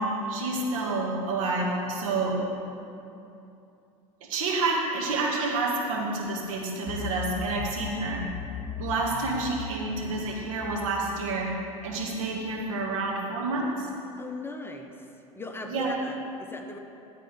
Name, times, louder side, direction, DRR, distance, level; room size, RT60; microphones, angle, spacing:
voice 1, 0.0-2.4 4.2-8.2 8.8-11.5 11.8-13.9 15.7-15.9, right 3 dB, 70° right, -2 dB, 2.0 m, -29 dB
sound 1, 6.9-12.6, left 5 dB, 45° left, 0.9 m, -39 dB
voice 2, 14.2-16.8, left 2 dB, 15° left, 4 dB, 0.8 m, -39 dB
12.5 x 4.2 x 7.6 m, 2.7 s
hypercardioid pair, 80°, 18 cm